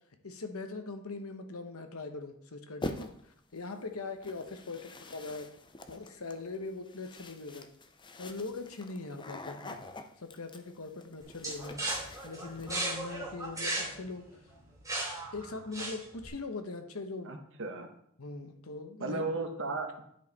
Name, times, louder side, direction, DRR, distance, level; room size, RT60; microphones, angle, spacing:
voice 1, 0.2-5.5 5.9-7.7 8.2-9.8 10.2-11.8 12.2-14.3 15.3-17.4 18.2-19.2, left 3 dB, 80° left, 6 dB, 1.0 m, -41 dB
sound 1, 2.8-3.4 4.2-12.8, left 2 dB, 20° left, 0.5 m, -45 dB
sound 2, 11.4-16.3, right 2 dB, 15° right, 2.8 m, -36 dB
voice 2, 17.2-17.9 19.0-20.1, right 3 dB, 60° right, 5 dB, 1.1 m, -35 dB
9.9 x 5.3 x 4.1 m, 0.69 s
head